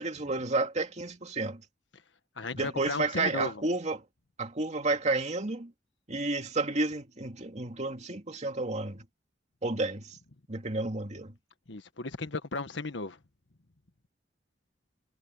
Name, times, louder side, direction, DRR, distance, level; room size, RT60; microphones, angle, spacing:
voice 1, 0.0-1.6 2.6-4.0 4.4-5.7 6.1-9.0 9.6-10.2 10.5-11.3, right 2 dB, 40° right, 2.4 m, -31 dB
voice 2, 2.4-3.6 11.7-13.2, left 3 dB, 80° left, 1.6 m, -35 dB
head